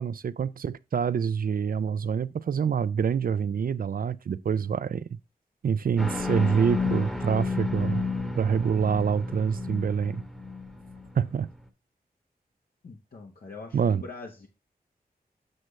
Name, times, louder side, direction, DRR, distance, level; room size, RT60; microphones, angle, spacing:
voice 1, 0.0-5.1 5.6-10.2 11.2-11.5 13.7-14.0, right 7 dB, 65° right, 0.4 m, -26 dB
sound 1, 6.0-11.4, left 3 dB, 5° left, 1.0 m, -31 dB
voice 2, 12.8-14.5, left 3 dB, 70° left, 1.1 m, -43 dB
7.6 x 6.5 x 3.1 m
wide cardioid pair, 85°, 16 cm